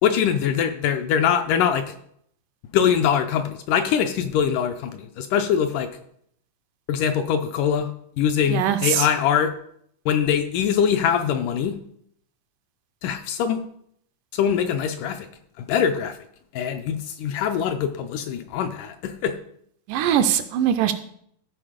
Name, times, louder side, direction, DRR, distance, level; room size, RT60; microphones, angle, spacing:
voice 1, 0.0-1.9 2.7-5.9 6.9-7.9 8.2-9.5 10.1-11.8 13.0-13.6 14.3-15.3 15.6-16.2 16.5-19.3, left 8 dB, 80° left, 6 dB, 2.0 m, -23 dB
voice 2, 8.5-9.1 19.9-20.9, right 10 dB, 80° right, 9 dB, 2.0 m, -21 dB
13.5 x 4.7 x 5.0 m, 0.68 s
omnidirectional pair, 4.0 m